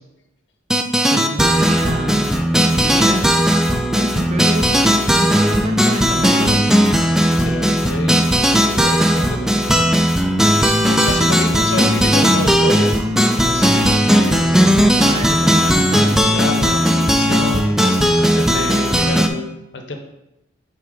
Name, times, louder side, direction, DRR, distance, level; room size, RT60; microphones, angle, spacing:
sound 1, 0.7-19.3, equal, 5° right, 0.3 m, -16 dB
voice 1, 1.1-3.3 3.9-6.6 15.0-16.4 19.0-19.3, right 1 dB, 35° right, 5 dB, 0.6 m, -26 dB
voice 2, 7.2-9.8 10.9-13.0 13.4-14.6 16.3-20.0, left 2 dB, 70° left, 5 dB, 0.8 m, -28 dB
6.1 x 4.5 x 3.8 m, 0.92 s
head